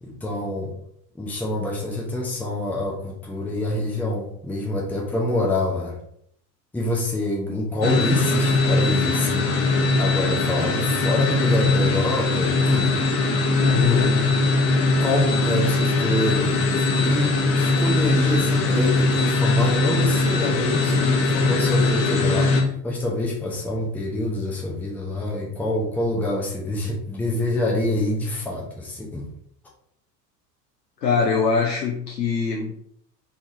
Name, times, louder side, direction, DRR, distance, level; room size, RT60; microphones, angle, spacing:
voice 1, 0.0-0.7 1.2-6.0 6.7-9.5 9.9-13.0 13.2-13.3 13.6-14.3 14.8-29.3, left 1 dB, 5° left, -3 dB, 0.7 m, -26 dB
sound 1, 7.8-22.6, left 3 dB, 60° left, 0.9 m, -21 dB
voice 2, 13.6-14.3 31.0-32.8, left 5 dB, 90° left, 1 dB, 0.5 m, -23 dB
3.5 x 3.3 x 2.7 m, 0.69 s
figure-of-eight pair, 70°, 48 cm